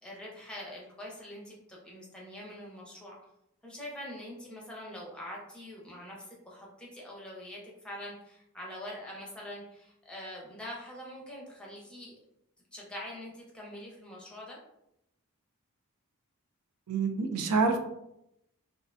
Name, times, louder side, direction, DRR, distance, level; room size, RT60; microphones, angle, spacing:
voice 1, 0.0-3.2 3.6-12.2 12.7-14.6, left 1 dB, 5° left, -4 dB, 0.6 m, -44 dB
voice 2, 16.9-17.8, right 4 dB, 75° right, 6 dB, 0.4 m, -27 dB
2.4 x 2.1 x 2.4 m, 0.82 s
head